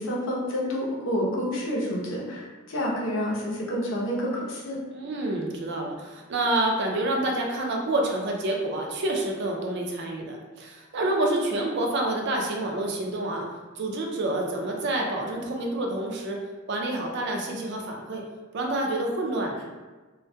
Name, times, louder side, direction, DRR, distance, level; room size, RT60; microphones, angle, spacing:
voice 1, 0.0-4.8, equal, 70° left, -4 dB, 0.6 m, -29 dB
voice 2, 4.9-13.5 13.8-16.4 16.7-18.2 18.5-19.7, right 1 dB, 60° right, 1 dB, 0.4 m, -28 dB
2.2 x 2.1 x 2.6 m, 1.3 s
head